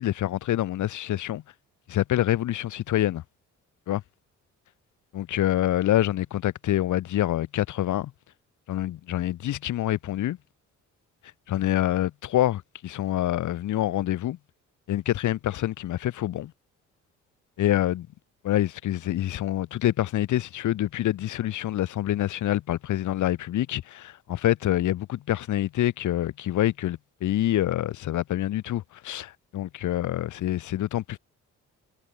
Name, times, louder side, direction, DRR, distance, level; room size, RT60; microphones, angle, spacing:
voice 1, 0.0-1.4 1.9-3.2 3.9-4.0 5.1-8.1 8.7-10.4 11.5-14.4 14.9-16.5 17.6-18.1 18.4-31.2, left 13 dB, 75° left, 2.9 m, -26 dB
cardioid pair, 90°, 30 cm